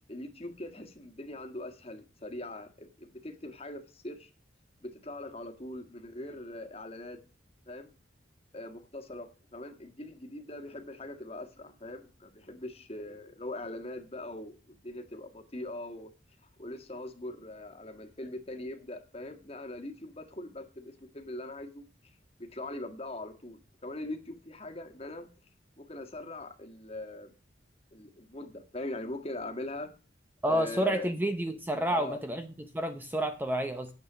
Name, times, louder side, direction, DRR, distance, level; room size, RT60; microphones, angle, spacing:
voice 1, 0.1-4.3 4.8-7.2 7.7-7.9 8.5-16.1 16.6-21.8 22.4-25.3 25.8-27.3 27.9-29.9 30.4-31.1 31.9-32.2, left 1 dB, 30° left, 1.6 m, -41 dB
voice 2, 30.4-33.9, right 1 dB, 10° right, 0.7 m, -30 dB
9.5 x 6.9 x 6.1 m
head